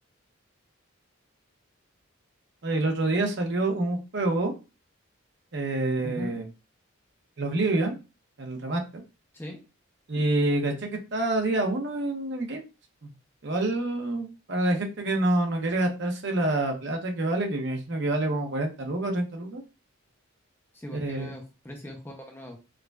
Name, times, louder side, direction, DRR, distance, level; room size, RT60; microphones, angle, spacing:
voice 1, 2.6-4.5 5.5-6.5 7.4-8.0 8.4-9.0 10.1-12.6 13.4-19.6 20.9-21.3, right 2 dB, 55° right, 3 dB, 0.8 m, -27 dB
voice 2, 6.0-6.4 9.3-9.6 20.7-22.6, left 1 dB, 10° left, 2 dB, 0.5 m, -40 dB
4.7 x 2.2 x 2.3 m, 0.29 s
head